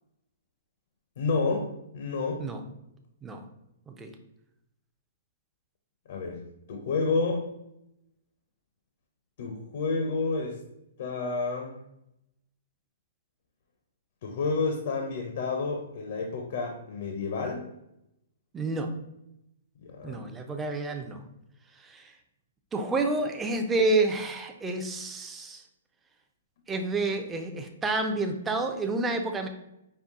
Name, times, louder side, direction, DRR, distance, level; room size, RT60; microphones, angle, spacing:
voice 1, 1.2-2.5 6.1-7.5 9.4-10.6 11.0-11.8 14.2-17.7 19.8-20.3, left 4 dB, 55° left, 3 dB, 0.6 m, -30 dB
voice 2, 18.5-18.9 20.0-21.2 21.8-22.1 22.7-25.6 26.7-29.5, right 2 dB, 10° right, 4 dB, 0.4 m, -29 dB
5.5 x 2.1 x 3.6 m, 0.84 s
hypercardioid pair, 155°, 0 cm